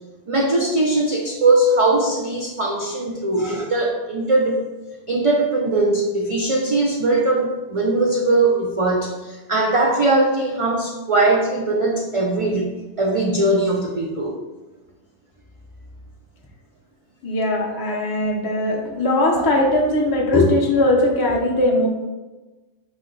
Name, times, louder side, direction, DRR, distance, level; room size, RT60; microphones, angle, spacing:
voice 1, 0.3-4.6 5.1-14.4, right 2 dB, 50° right, -1 dB, 0.4 m, -20 dB
voice 2, 17.2-21.9, left 1 dB, 25° left, -2 dB, 0.6 m, -19 dB
5.0 x 2.7 x 3.9 m, 1.2 s
omnidirectional pair, 1.1 m